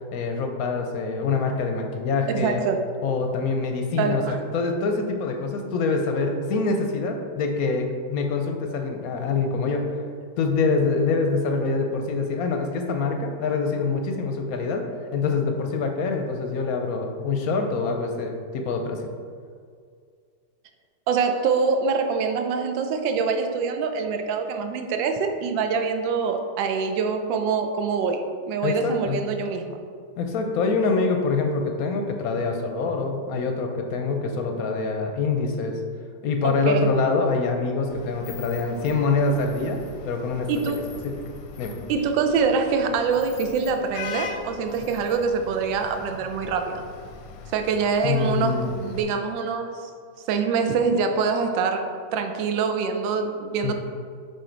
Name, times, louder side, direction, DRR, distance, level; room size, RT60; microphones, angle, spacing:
voice 1, 0.1-2.6 3.0-9.9 10.4-14.8 15.1-19.0 28.6-29.2 30.2-35.8 36.2-39.8 40.0-40.5 41.0-41.2 41.6-41.7 48.0-48.8 53.6-53.7, left 4 dB, 65° left, 4 dB, 0.9 m, -25 dB
voice 2, 2.3-2.8 4.0-4.4 21.1-29.8 36.4-36.9 40.5-40.8 41.9-46.9 47.5-49.8 50.3-53.7, right 5 dB, 85° right, 6 dB, 1.3 m, -25 dB
Vehicle horn car horn honking / Traffic noise roadway noise, 37.9-49.0, left 5 dB, 90° left, 1.3 m, -41 dB
6.3 x 4.2 x 3.9 m, 2.1 s
omnidirectional pair, 2.0 m